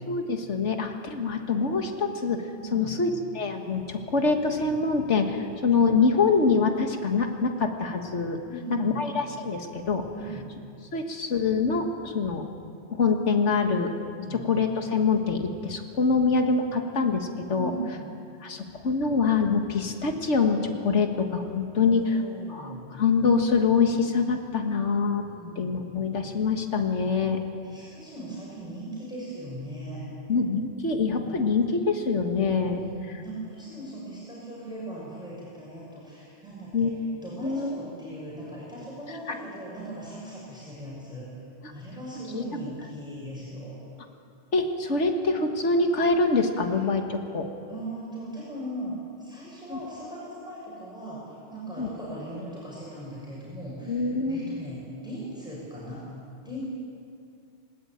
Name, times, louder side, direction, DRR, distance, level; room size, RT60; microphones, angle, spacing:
voice 1, 0.1-2.4 2.7-8.4 8.7-10.1 10.9-12.4 12.9-13.9 14.3-17.7 18.4-22.1 22.5-25.3 25.6-27.4 30.3-32.8 36.7-36.9 37.4-37.7 42.3-42.4 44.5-47.5 49.7-49.8 51.8-51.9 53.9-54.6, left 4 dB, 90° left, 4 dB, 1.9 m, -25 dB
voice 2, 2.6-3.0 8.5-9.0 10.2-10.5 14.1-14.5 17.5-18.1 21.9-22.9 25.2-25.8 27.6-30.0 30.9-31.3 32.7-36.9 37.2-41.3 41.7-43.8 47.7-56.0 56.4-56.7, right 1 dB, 5° right, -6 dB, 6.2 m, -39 dB
20.0 x 18.5 x 8.9 m, 2.4 s
omnidirectional pair, 1.2 m